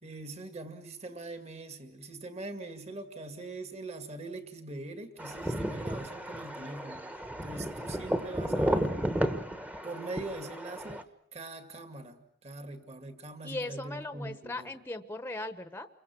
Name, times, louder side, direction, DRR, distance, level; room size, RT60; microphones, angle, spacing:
voice 1, 0.0-7.1 7.4-8.9 9.8-14.7, right 2 dB, 35° right, 2.3 m, -42 dB
sound 1, 5.2-11.0, equal, 10° right, 1.3 m, -33 dB
voice 2, 13.4-15.9, left 2 dB, 10° left, 1.1 m, -38 dB
29.5 x 23.5 x 6.1 m
head